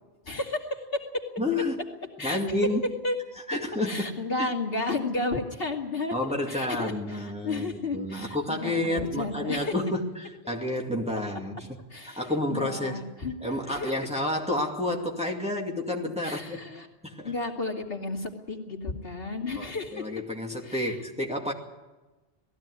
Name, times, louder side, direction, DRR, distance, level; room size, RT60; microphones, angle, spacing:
voice 1, 0.2-1.0 2.2-2.6 3.0-3.2 3.8-9.7 11.9-13.3 13.7-13.9 16.2-16.9 17.2-20.1 20.6-20.9, left 3 dB, 60° left, 1 dB, 2.7 m, -33 dB
voice 2, 1.4-1.8 2.2-2.8 3.5-4.5 6.1-11.8 12.0-13.0 13.4-16.6 17.0-17.3 19.6-21.5, left 1 dB, 5° right, 0 dB, 2.4 m, -30 dB
19.5 x 15.5 x 9.7 m, 1.2 s
omnidirectional pair, 1.1 m